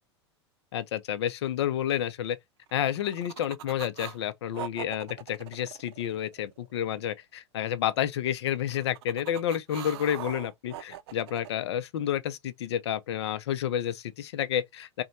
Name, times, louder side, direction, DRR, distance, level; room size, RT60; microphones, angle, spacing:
voice 1, 0.7-2.4 2.7-15.0, left 10 dB, 70° left, 0.6 m, -30 dB
sound 1, 2.7-4.2 4.5-6.7 8.5-11.5, right 11 dB, 60° right, 0.4 m, -42 dB
3.0 x 2.2 x 4.0 m
figure-of-eight pair, 90°, 15 cm